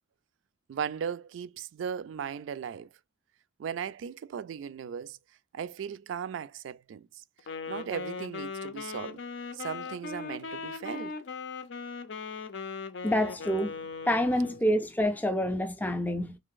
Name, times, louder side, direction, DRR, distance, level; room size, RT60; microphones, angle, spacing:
voice 1, 0.7-2.9 3.6-5.2 5.5-7.1 7.7-9.2 9.5-11.1, right 7 dB, 85° right, 0.3 m, -37 dB
Wind instrument woodwind instrument, 7.4-14.6, left 4 dB, 70° left, 0.5 m, -39 dB
voice 2, 13.0-13.7 14.1-16.4, equal, 10° left, 0.4 m, -27 dB
3.3 x 2.5 x 3.6 m
head